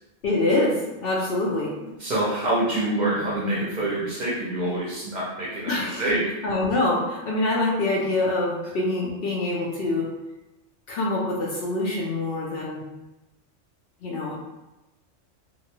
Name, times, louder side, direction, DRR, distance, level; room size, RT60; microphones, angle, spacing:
voice 1, 0.2-0.7 1.0-1.7 5.7-6.0 6.4-10.1 10.9-12.8 14.0-14.3, left 2 dB, 60° left, -4 dB, 0.7 m, -25 dB
voice 2, 2.0-6.3, right 1 dB, 45° right, -6 dB, 0.7 m, -26 dB
2.8 x 2.2 x 2.8 m, 1.0 s
omnidirectional pair, 1.2 m